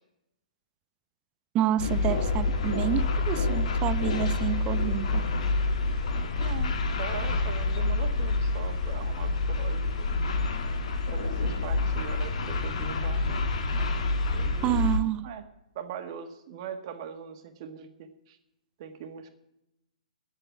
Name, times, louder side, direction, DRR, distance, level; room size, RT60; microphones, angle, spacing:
voice 1, 1.5-5.3 14.6-15.3, right 12 dB, 25° right, 0.3 m, -29 dB
sound 1, 1.8-15.0, left 3 dB, 60° left, 1.6 m, -27 dB
voice 2, 6.4-6.7 7.0-10.1 10.6-10.7 11.1-13.4 13.7-13.9 14.3-14.7 15.2-15.4 15.8-18.4 18.8-19.3, right 8 dB, 45° right, 1.6 m, -41 dB
10.5 x 7.6 x 8.6 m
figure-of-eight pair, 120°, 4 cm